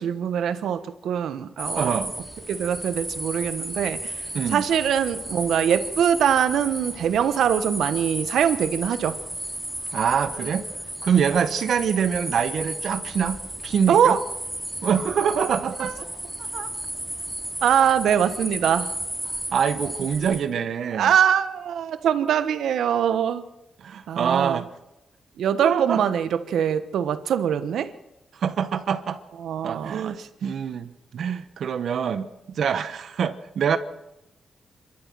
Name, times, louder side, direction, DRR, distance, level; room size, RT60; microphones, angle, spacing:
voice 1, 0.0-2.0 2.5-4.1 4.5-9.2 13.9-14.2 15.8-15.9 16.5-16.7 17.6-18.9 20.9-23.4 24.1-24.6 25.4-27.9 29.4-30.3, right 8 dB, 90° right, 12 dB, 1.2 m, -23 dB
sound 1, 1.6-20.4, right 1 dB, ahead, 2.7 m, -34 dB
voice 2, 1.8-2.1 4.3-4.6 9.9-10.7 11.0-13.4 13.6-14.2 14.8-15.9 19.5-21.1 23.8-24.7 25.6-26.0 28.4-29.2 29.6-32.3 32.5-33.8, right 7 dB, 65° right, 10 dB, 1.1 m, -25 dB
26.5 x 12.5 x 7.6 m, 0.92 s
cardioid pair, 120°, 0 cm